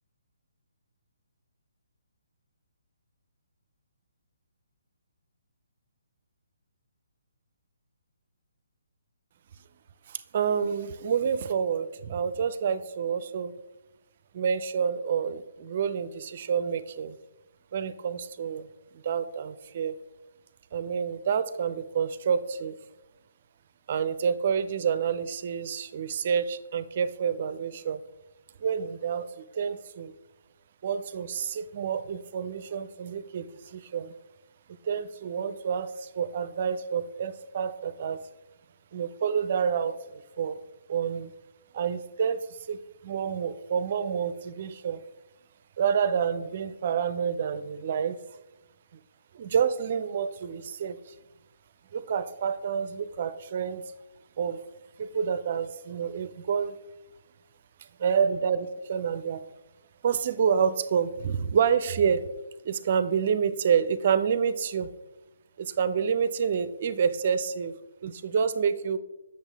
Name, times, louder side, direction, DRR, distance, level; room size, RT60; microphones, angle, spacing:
voice 1, 10.1-13.5 14.3-17.2 17.7-18.7 18.9-19.9 20.7-22.7 23.9-28.0 28.6-30.1 30.8-34.1 34.8-38.2 38.9-40.6 40.9-41.3 41.7-42.8 43.0-45.0 45.8-48.2 49.3-51.0 51.9-53.8 54.4-54.6 55.0-56.7 58.0-59.4 60.0-62.2 62.6-64.9 65.6-67.7 68.0-69.0, right 7 dB, 45° right, 13 dB, 0.5 m, -28 dB
8.0 x 6.5 x 3.4 m, 1.0 s
figure-of-eight pair, 140°, 0 cm